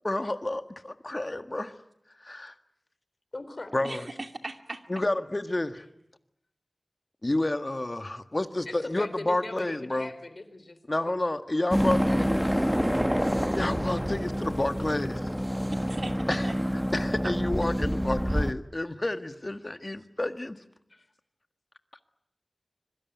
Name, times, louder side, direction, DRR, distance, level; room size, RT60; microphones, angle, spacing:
voice 1, 0.0-1.7 2.2-2.5 3.7-4.1 4.9-5.8 7.2-10.1 10.9-12.4 13.5-15.3 16.3-16.5 16.9-20.6, left 1 dB, 35° left, 9 dB, 1.7 m, -30 dB
voice 2, 3.3-4.0 8.7-10.8 11.9-12.6 20.9-21.1, left 2 dB, 55° left, 11 dB, 3.9 m, -40 dB
voice 3, 3.8-4.8 15.7-16.6 17.2-17.3, right 2 dB, 60° right, 7 dB, 2.5 m, -38 dB
sound 1, 11.7-18.5, equal, 5° right, 1.1 m, -27 dB
25.5 x 23.0 x 9.5 m, 0.75 s
wide cardioid pair, 65°, 0 cm